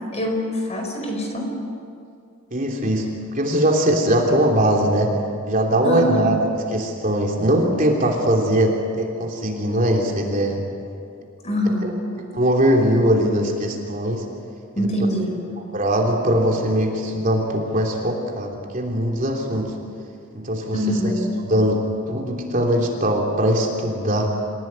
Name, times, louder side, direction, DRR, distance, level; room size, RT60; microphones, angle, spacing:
voice 1, 0.1-1.5 2.8-3.1 5.8-6.3 11.4-12.3 14.8-15.4 20.7-21.3, left 1 dB, 30° left, 2 dB, 4.9 m, -24 dB
voice 2, 2.5-3.1 3.3-5.2 5.5-6.4 6.7-10.6 11.8-11.9 12.3-14.3 14.8-14.9 15.7-19.7 20.3-21.1 21.4-24.3, right 1 dB, 40° right, 0 dB, 3.2 m, -21 dB
28.0 x 17.0 x 9.6 m, 2.4 s
head